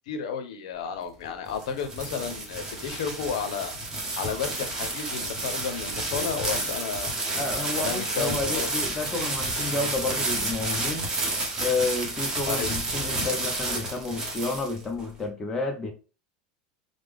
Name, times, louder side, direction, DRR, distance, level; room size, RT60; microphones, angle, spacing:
voice 1, 0.1-3.7 4.2-7.1 7.8-8.7 12.5-12.7, left 6 dB, 90° left, 0.6 m, -32 dB
sound 1, 1.2-15.1, right 2 dB, 20° right, 0.8 m, -30 dB
voice 2, 7.4-11.1 11.6-15.9, left 3 dB, 15° left, 0.5 m, -30 dB
3.3 x 2.0 x 3.4 m
supercardioid pair, 155°, 4 cm